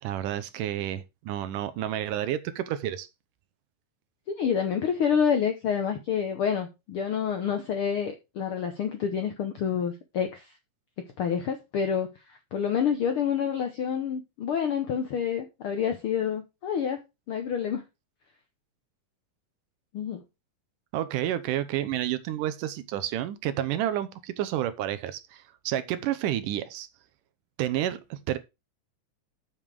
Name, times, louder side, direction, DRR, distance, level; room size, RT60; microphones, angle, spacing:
voice 1, 0.0-3.1 20.9-26.9 27.6-28.4, right 12 dB, 80° right, 2.4 m, -30 dB
voice 2, 4.3-10.5 11.2-17.0 17.3-17.8 19.9-20.2, left 7 dB, 75° left, 1.2 m, -28 dB
7.4 x 7.3 x 4.8 m
omnidirectional pair, 3.7 m